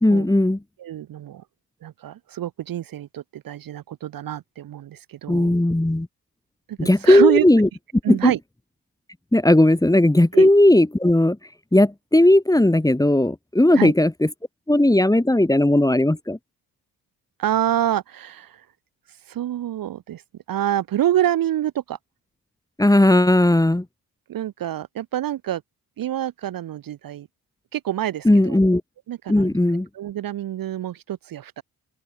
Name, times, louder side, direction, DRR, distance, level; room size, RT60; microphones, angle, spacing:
voice 1, 0.0-0.6 5.3-6.1 6.8-7.7 8.1-8.3 9.3-11.4 11.7-14.3 14.7-16.4 22.8-23.8 28.2-28.8 29.3-29.9, left 1 dB, 10° left, 1.3 m, -17 dB
voice 2, 0.8-1.4 1.8-5.5 6.7-7.5 8.0-8.4 10.3-10.5 13.7-13.9 17.4-18.6 19.3-20.2 20.5-22.0 24.3-25.6 26.0-27.3 27.7-28.6 29.1-29.5 29.9-31.6, right 12 dB, 60° right, 0.7 m, -26 dB
open air
supercardioid pair, 45°, 40 cm